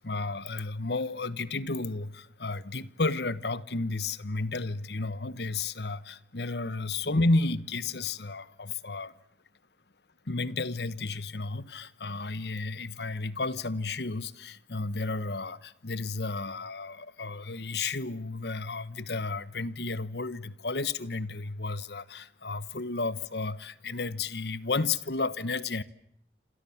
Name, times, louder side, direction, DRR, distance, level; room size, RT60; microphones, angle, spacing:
voice 1, 0.0-9.1 10.3-25.8, left 3 dB, 75° left, 1.2 m, -32 dB
28.0 x 26.5 x 7.3 m
head